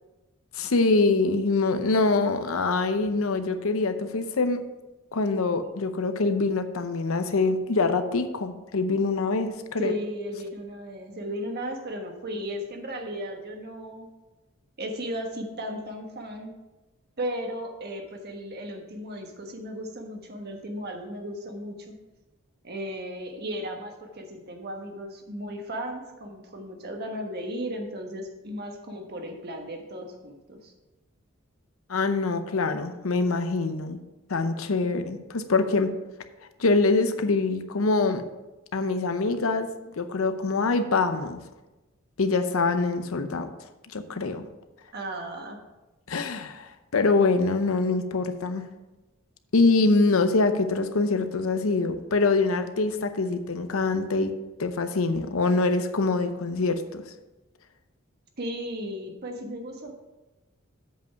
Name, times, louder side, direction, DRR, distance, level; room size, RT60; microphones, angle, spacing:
voice 1, 0.6-4.6 5.1-9.9 31.9-34.0 34.3-35.9 36.6-38.2 38.7-39.7 40.0-41.4 42.2-43.5 43.9-44.4 46.1-48.6 49.5-54.3 54.6-57.0, left 3 dB, 85° left, 9 dB, 0.7 m, -24 dB
voice 2, 9.8-14.1 14.8-16.5 17.2-21.9 22.6-30.7 44.9-45.6 58.4-59.9, equal, 50° right, 3 dB, 1.3 m, -35 dB
8.0 x 5.2 x 5.8 m, 1.1 s
head